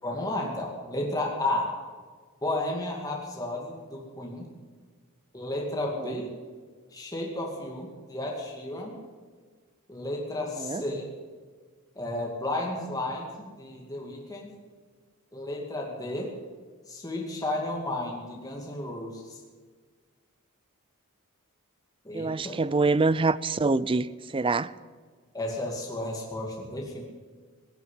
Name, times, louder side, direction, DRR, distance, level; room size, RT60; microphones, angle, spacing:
voice 1, 0.0-1.7 2.4-4.5 5.3-6.3 6.9-9.0 9.9-11.1 12.0-14.5 15.3-16.3 16.9-19.4 22.0-22.6 25.3-27.0, left 1 dB, 15° left, 2.4 m, -33 dB
voice 2, 22.1-24.7, right 3 dB, 25° right, 0.5 m, -25 dB
17.5 x 9.4 x 8.4 m
head